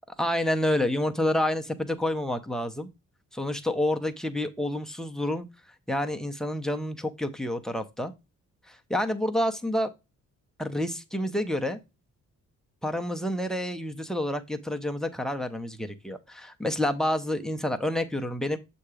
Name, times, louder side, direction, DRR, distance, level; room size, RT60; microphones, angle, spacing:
voice 1, 0.2-2.9 3.3-5.5 5.9-8.1 8.7-9.9 10.6-11.8 12.8-18.6, left 1 dB, ahead, 0.5 m, -28 dB
7.7 x 2.8 x 4.8 m
wide cardioid pair, 160°, 30 cm